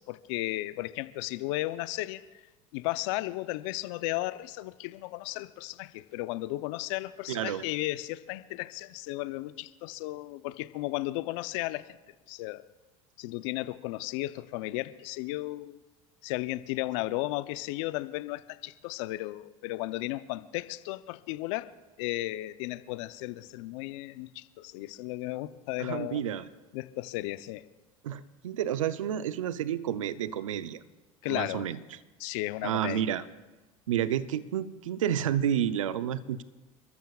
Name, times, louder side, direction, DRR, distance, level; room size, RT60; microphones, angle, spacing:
voice 1, 0.0-2.2 2.7-12.0 12.3-12.6 13.2-15.8 16.2-26.2 26.7-27.6 31.2-31.7 32.2-33.0, left 18 dB, 70° left, 14 dB, 0.7 m, -34 dB
voice 2, 7.3-7.6 25.8-26.5 28.0-30.8 31.3-31.8 32.6-33.3 33.9-36.4, right 10 dB, 85° right, 14 dB, 0.6 m, -30 dB
29.5 x 13.5 x 2.4 m, 1.1 s
hypercardioid pair, 80°, 16 cm